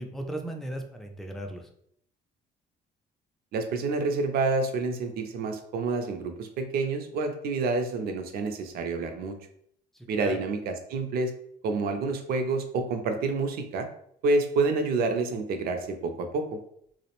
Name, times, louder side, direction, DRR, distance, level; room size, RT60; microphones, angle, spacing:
voice 1, 0.0-1.7 9.9-10.4, right 1 dB, ahead, 3 dB, 0.3 m, -37 dB
voice 2, 3.5-9.4 10.1-11.3 11.6-13.9 14.2-16.6, right 3 dB, 65° right, 6 dB, 0.4 m, -28 dB
2.4 x 2.0 x 2.9 m, 0.70 s
cardioid pair, 110°, 17 cm